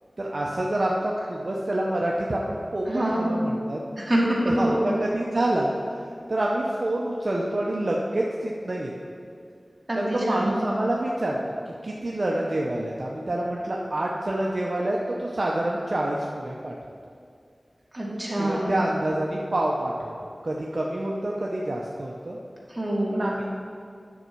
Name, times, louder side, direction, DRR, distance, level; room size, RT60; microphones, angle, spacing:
voice 1, 0.2-3.8 4.5-5.7 6.3-8.9 10.0-11.4 11.8-16.7 18.4-20.1 20.4-22.4 23.1-23.5, right 1 dB, 55° right, -3 dB, 0.8 m, -27 dB
voice 2, 2.9-3.2 4.0-4.9 9.9-10.5 17.9-18.7 22.7-23.2, right 1 dB, 25° right, -5 dB, 2.4 m, -25 dB
9.6 x 6.9 x 4.6 m, 2.3 s
wide cardioid pair, 55°, 0 cm